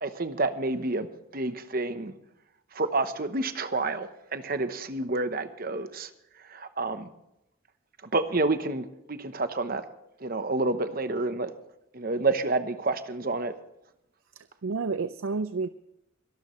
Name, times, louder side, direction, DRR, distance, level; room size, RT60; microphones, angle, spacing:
voice 1, 0.0-1.1 1.3-2.1 2.7-6.1 6.5-7.1 8.1-9.8 10.2-11.5 11.9-13.5, right 2 dB, 45° right, 10 dB, 1.0 m, -29 dB
voice 2, 14.4-15.7, right 4 dB, 80° right, 13 dB, 0.5 m, -30 dB
23.5 x 12.5 x 3.2 m, 0.83 s
head